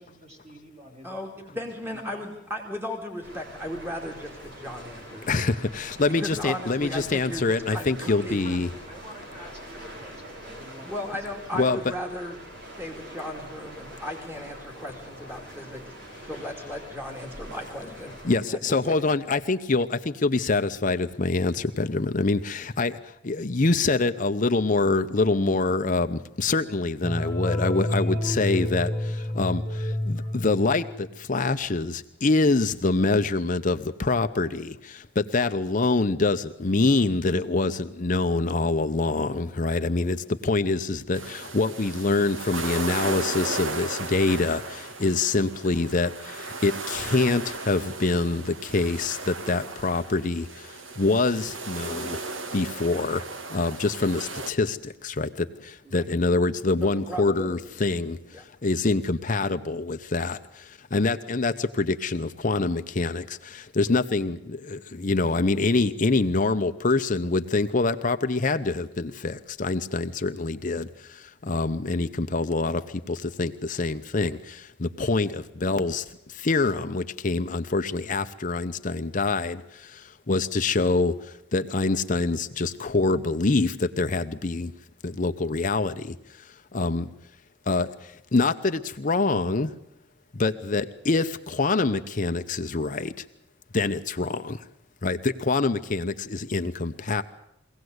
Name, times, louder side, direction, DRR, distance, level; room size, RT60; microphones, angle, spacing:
voice 1, 0.0-1.2 1.5-2.3 8.0-11.1, equal, 35° right, 1 dB, 5.7 m, -48 dB
voice 2, 1.0-5.3 6.2-8.4 10.8-12.3 12.6-15.9 16.2-18.1 18.8-19.2 55.9-56.1 56.8-57.6 58.3-58.4 60.9-61.0, left 1 dB, 10° right, 1 dB, 2.6 m, -36 dB
sound 1, 3.2-18.4, equal, 65° right, 6.1 m, -44 dB
voice 3, 5.3-8.7 11.5-11.8 18.2-23.0 23.2-50.5 51.0-52.2 52.5-53.2 53.5-58.2 58.6-60.4 60.9-70.9 71.4-72.8 73.1-76.0 76.3-80.0 80.3-81.1 81.5-84.7 85.0-86.1 86.7-87.1 87.7-87.9 88.3-89.7 90.4-93.1 93.7-94.6 95.0-97.2, left 3 dB, 45° left, 8 dB, 0.8 m, -25 dB
sound 2, 27.0-31.1, left 1 dB, 10° left, 1.2 m, -29 dB
sound 3, 41.1-54.5, right 3 dB, 85° right, 1.8 m, -36 dB
23.0 x 17.5 x 8.0 m, 0.83 s
head